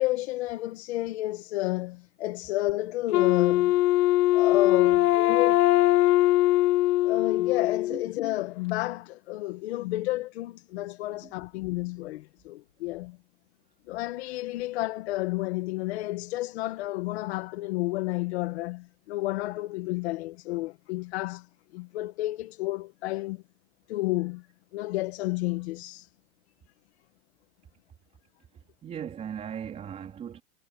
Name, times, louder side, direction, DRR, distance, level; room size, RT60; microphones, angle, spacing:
voice 1, 0.0-3.8 4.3-5.6 7.0-13.2 13.9-23.4 23.9-24.5 24.7-26.1, left 18 dB, 45° left, 1.3 m, -31 dB
Wind instrument woodwind instrument, 3.1-8.1, left 15 dB, 90° left, 1.2 m, -21 dB
voice 2, 28.8-30.4, right 8 dB, 15° right, 3.6 m, -37 dB
supercardioid pair, 175°, 45 cm